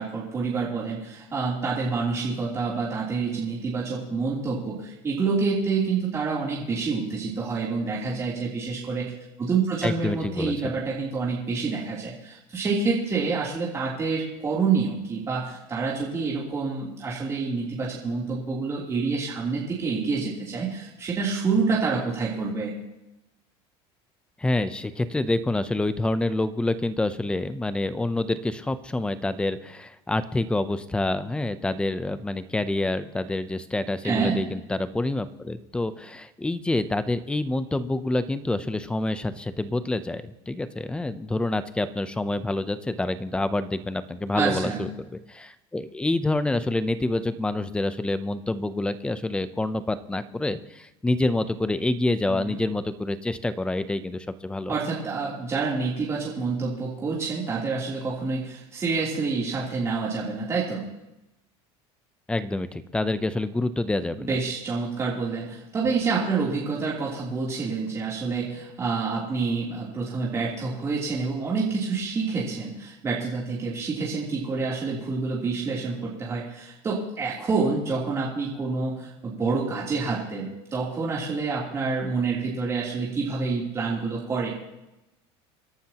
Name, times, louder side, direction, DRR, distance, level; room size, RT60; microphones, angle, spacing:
voice 1, 0.0-9.1 9.4-22.7 34.0-34.4 44.3-44.8 52.3-52.6 54.7-60.9 64.2-84.5, right 4 dB, 20° right, -6 dB, 3.3 m, -27 dB
voice 2, 9.8-10.7 24.4-54.8 62.3-64.4, left 2 dB, 5° left, 13 dB, 0.7 m, -27 dB
28.0 x 11.5 x 3.0 m, 0.94 s
cardioid pair, 145°, 13 cm